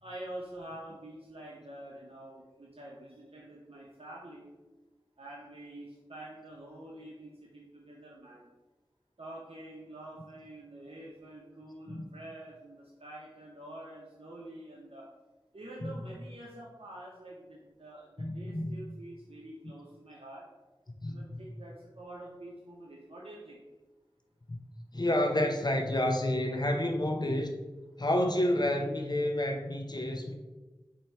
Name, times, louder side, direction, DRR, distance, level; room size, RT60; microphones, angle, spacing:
voice 1, 0.0-4.5 5.2-8.4 9.2-15.1 15.5-20.5 21.0-23.6, right 1 dB, 85° right, -4 dB, 0.6 m, -47 dB
voice 2, 18.2-18.9 21.0-21.4 24.5-24.6 24.9-27.5 28.0-30.3, left 1 dB, 45° left, 3 dB, 0.6 m, -30 dB
4.4 x 2.7 x 4.3 m, 1.2 s
wide cardioid pair, 40°, 10 cm